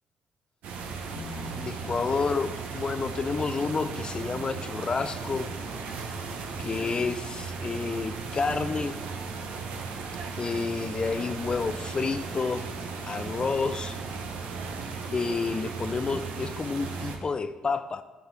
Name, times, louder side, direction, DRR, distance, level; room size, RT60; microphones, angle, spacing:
sound 1, 0.6-17.2, right 4 dB, 75° right, 0.9 m, -36 dB
sound 2, 1.2-11.2, right 3 dB, 65° left, 0.9 m, -49 dB
voice 1, 1.5-5.5 6.6-9.0 10.4-12.7 13.1-14.0 15.1-18.0, left 4 dB, 35° left, 12 dB, 0.5 m, -30 dB
9.7 x 6.4 x 3.4 m, 1.2 s
supercardioid pair, 60°, 2 cm